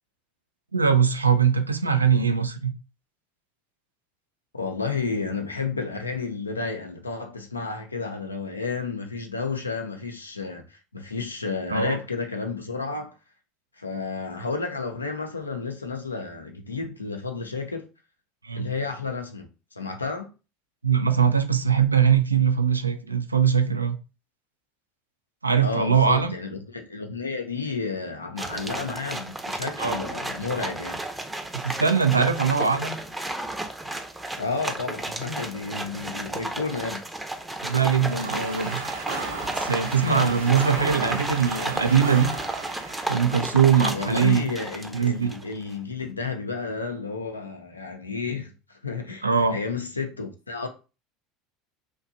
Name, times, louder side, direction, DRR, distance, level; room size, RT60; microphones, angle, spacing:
voice 1, 0.7-2.7 11.7-12.0 18.4-18.7 20.8-24.0 25.4-26.4 29.8-30.0 31.5-33.0 37.6-38.8 39.6-42.3 43.1-44.5 44.9-45.3 49.2-49.6, right 7 dB, 90° right, 0.3 m, -21 dB
voice 2, 4.5-13.1 13.8-17.8 18.5-20.3 25.6-31.0 34.4-37.0 40.0-41.2 43.9-50.7, left 4 dB, 90° left, 0.5 m, -31 dB
sound 1, 28.4-45.5, right 2 dB, 10° right, 0.5 m, -33 dB
sound 2, 37.6-43.3, right 4 dB, 70° right, 0.7 m, -35 dB
2.7 x 2.2 x 2.6 m
figure-of-eight pair, 70°, 0 cm